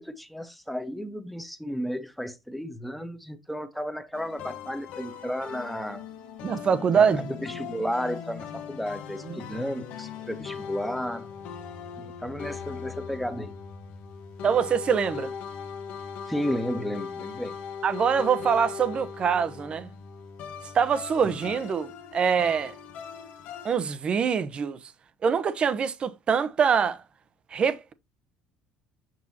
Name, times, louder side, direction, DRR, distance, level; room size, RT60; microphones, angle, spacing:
voice 1, 0.0-6.1 6.9-11.3 12.0-13.6 16.3-17.6 21.2-21.4, equal, ahead, 1.1 m, -33 dB
sound 1, 4.1-23.8, left 7 dB, 65° left, 1.2 m, -39 dB
voice 2, 6.4-7.2 14.4-15.3 17.8-19.9 20.7-22.7 23.6-24.8 25.2-27.0 27.5-27.9, right 6 dB, 40° right, 0.7 m, -24 dB
6.2 x 6.0 x 2.8 m
supercardioid pair, 80°, 3 cm